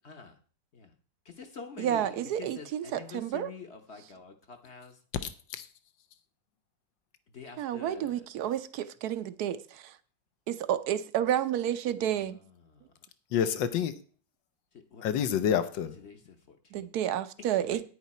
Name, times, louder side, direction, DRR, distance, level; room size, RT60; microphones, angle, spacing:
voice 1, 0.0-0.4 0.7-0.9 1.2-5.0 7.3-8.3 12.0-12.9 14.7-15.6 16.0-16.9 17.7-17.8, left 5 dB, 45° left, 1.0 m, -47 dB
voice 2, 1.8-3.5 7.6-9.9 10.5-12.4 16.7-17.8, right 10 dB, 65° right, 1.1 m, -30 dB
voice 3, 5.2-5.7 13.3-13.9 15.0-16.0, left 8 dB, 85° left, 1.5 m, -28 dB
9.7 x 9.2 x 4.2 m
omnidirectional pair, 1.9 m